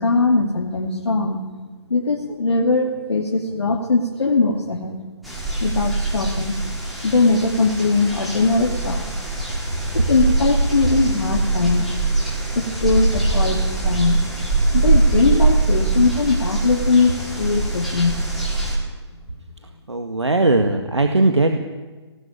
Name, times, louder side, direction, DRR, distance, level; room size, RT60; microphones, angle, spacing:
voice 1, 0.0-1.4 1.9-5.0 5.6-6.6 7.0-9.0 9.9-11.9 12.5-14.2 14.7-18.2, left 3 dB, 65° left, -1 dB, 2.8 m, -20 dB
sound 1, 5.2-18.7, right 3 dB, ahead, 5.2 m, -22 dB
voice 2, 19.9-21.6, right 2 dB, 85° right, 5 dB, 1.9 m, -18 dB
21.0 x 18.0 x 9.1 m, 1.3 s
figure-of-eight pair, 135°, 14 cm